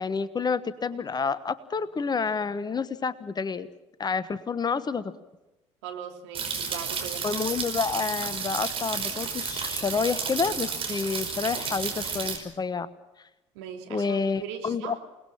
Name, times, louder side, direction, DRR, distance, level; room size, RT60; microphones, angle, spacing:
voice 1, 0.0-3.7 4.0-5.1 7.2-12.9 13.9-15.0, left 5 dB, 25° left, 16 dB, 1.2 m, -29 dB
voice 2, 5.8-7.3 13.5-15.0, right 8 dB, 65° right, 2 dB, 3.1 m, -39 dB
sound 1, 6.3-12.4, right 5 dB, 35° right, 5.2 m, -32 dB
28.5 x 19.5 x 7.3 m, 1.0 s
figure-of-eight pair, 55°, 16 cm